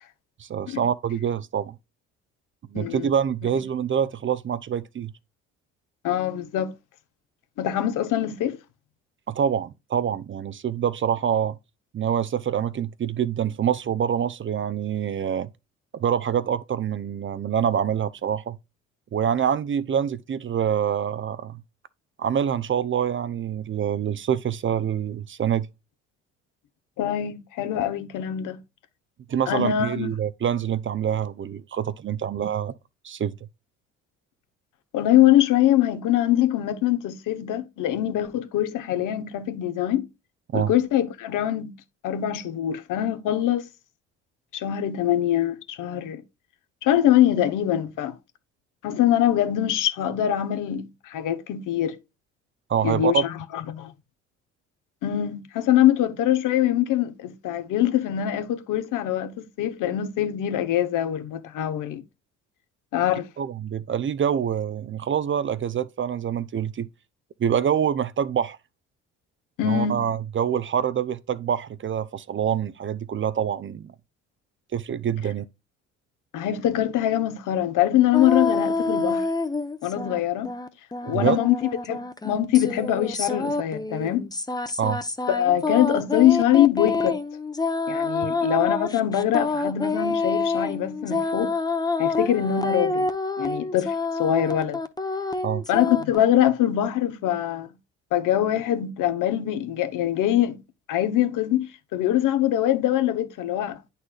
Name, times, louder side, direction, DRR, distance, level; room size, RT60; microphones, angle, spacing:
voice 1, 0.4-1.7 2.7-5.1 9.3-11.5 11.9-15.5 15.9-18.6 19.1-21.6 22.2-25.7 29.3-32.7 33.0-33.3 40.5-40.7 52.7-53.2 63.4-66.9 67.4-68.6 69.6-73.9 74.7-75.4 81.1-81.4 84.8-85.0 95.4-95.6, right 8 dB, 35° right, 0.6 m, -26 dB
voice 2, 2.7-3.1 6.0-6.7 7.6-8.6 27.0-28.6 29.5-30.1 34.9-40.1 40.5-41.7 42.0-43.7 44.5-46.2 46.8-48.2 48.8-52.0 52.8-53.9 55.0-62.0 62.9-63.3 69.6-70.0 76.3-79.2 79.8-80.5 81.0-81.5 81.8-84.3 85.3-87.2 87.9-91.5 92.0-93.1 93.4-93.9 94.2-94.8 95.7-97.7 98.1-100.6 100.9-103.8, left 11 dB, 60° left, 1.1 m, -23 dB
sound 1, 78.1-80.2 80.4-96.2, left 3 dB, 10° left, 0.9 m, -27 dB
11.0 x 4.1 x 2.4 m
hypercardioid pair, 55°, 36 cm